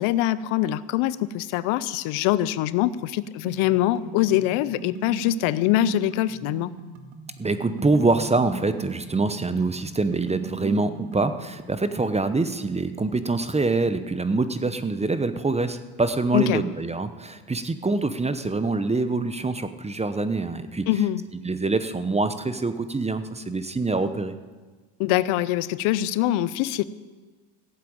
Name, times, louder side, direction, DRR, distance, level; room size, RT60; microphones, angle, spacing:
voice 1, 0.0-6.7 16.3-16.6 20.9-21.2 25.0-26.8, left 13 dB, 70° left, 17 dB, 0.7 m, -23 dB
sound 1, 3.5-11.5, right 6 dB, 55° right, 2.0 m, -39 dB
voice 2, 7.4-20.9 21.4-24.3, right 3 dB, 15° right, 11 dB, 0.8 m, -25 dB
15.5 x 7.6 x 8.7 m, 1.4 s
supercardioid pair, 95°, 50 cm